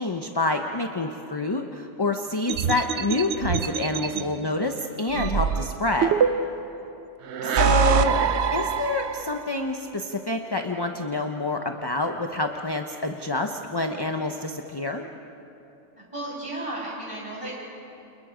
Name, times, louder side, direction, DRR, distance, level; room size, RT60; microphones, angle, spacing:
voice 1, 0.0-6.1 7.6-8.2 8.5-15.1, left 2 dB, 20° left, 4 dB, 0.8 m, -27 dB
sound 1, 2.5-4.2 5.1-6.7 7.3-9.5, right 7 dB, 65° right, 1.0 m, -24 dB
voice 2, 4.1-4.6 7.4-8.0 16.1-17.5, right 1 dB, 25° right, -5 dB, 7.2 m, -35 dB
29.5 x 28.5 x 5.1 m, 2.9 s
omnidirectional pair, 1.3 m